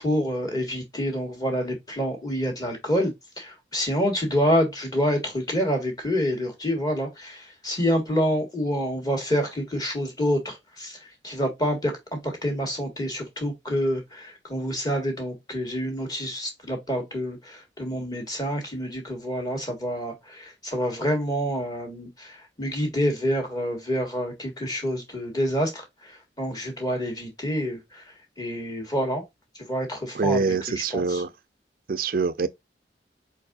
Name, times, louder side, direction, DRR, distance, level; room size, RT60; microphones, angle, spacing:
voice 1, 0.0-28.0 28.4-29.2 29.6-31.2, equal, 20° left, 1.8 m, -27 dB
voice 2, 30.1-31.3 31.9-32.5, right 4 dB, 55° right, 0.4 m, -25 dB
4.7 x 4.5 x 2.5 m
head